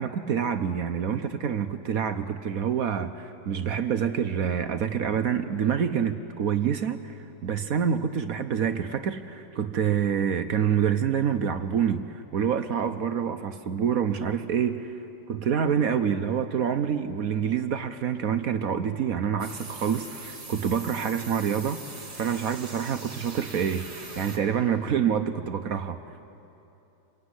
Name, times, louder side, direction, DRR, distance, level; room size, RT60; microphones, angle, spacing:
voice 1, 0.0-15.0 15.3-21.8 22.2-26.0, right 8 dB, 60° right, 9 dB, 1.0 m, -27 dB
sound 1, 19.4-24.4, right 3 dB, 30° right, 2.6 m, -42 dB
27.0 x 22.0 x 9.7 m, 2.9 s
omnidirectional pair, 2.2 m